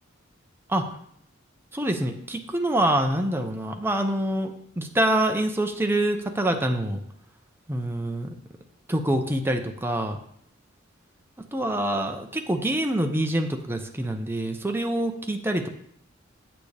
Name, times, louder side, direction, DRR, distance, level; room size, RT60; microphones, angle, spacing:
voice 1, 1.7-7.0 7.7-8.3 8.9-10.2 11.5-15.7, right 1 dB, 10° right, 4 dB, 0.7 m, -26 dB
8.7 x 8.3 x 3.4 m, 0.67 s
head